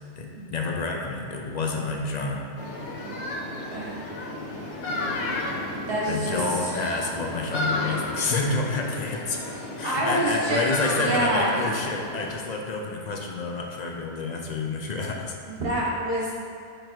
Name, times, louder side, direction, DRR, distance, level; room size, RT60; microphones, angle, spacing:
voice 1, 0.2-2.5 6.1-9.5 9.8-15.3, left 3 dB, 45° left, 1 dB, 0.6 m, -29 dB
sound 1, 2.6-12.3, left 1 dB, 90° left, 1.1 m, -32 dB
voice 2, 5.9-6.4 9.8-11.6 15.5-16.3, right 1 dB, 55° right, -5 dB, 1.3 m, -26 dB
4.9 x 4.4 x 4.5 m, 2.3 s
omnidirectional pair, 1.2 m